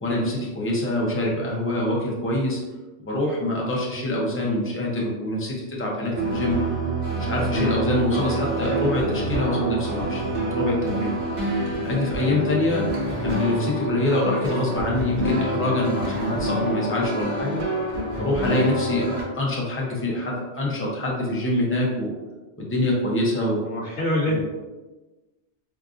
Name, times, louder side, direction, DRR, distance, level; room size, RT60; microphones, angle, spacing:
voice 1, 0.0-2.6 3.0-6.6 7.2-10.2 10.5-11.2 11.8-12.9 13.2-17.6 18.2-22.1 22.6-23.6 24.3-24.4, left 1 dB, 20° left, -3 dB, 0.4 m, -25 dB
sound 1, 6.1-19.2, right 1 dB, 50° right, 0.6 m, -27 dB
voice 2, 23.6-24.4, left 1 dB, 55° left, -7 dB, 0.9 m, -24 dB
3.9 x 2.5 x 2.4 m, 1.2 s
omnidirectional pair, 1.2 m